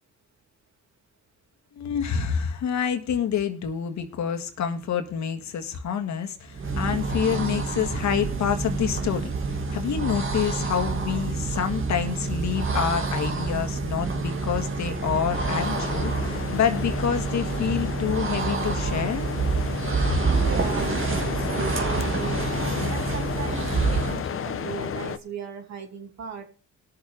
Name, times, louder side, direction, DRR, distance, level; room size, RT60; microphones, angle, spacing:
voice 1, 1.8-19.3 20.1-20.2, left 8 dB, 65° left, 1.8 m, -27 dB
sound 1, 6.5-24.3, right 4 dB, 45° right, 2.0 m, -27 dB
sound 2, 15.3-25.2, left 8 dB, 45° left, 0.9 m, -33 dB
voice 2, 20.2-22.5 22.9-26.4, right 7 dB, 65° right, 2.8 m, -37 dB
20.5 x 7.1 x 3.5 m
cardioid pair, 90°, 30 cm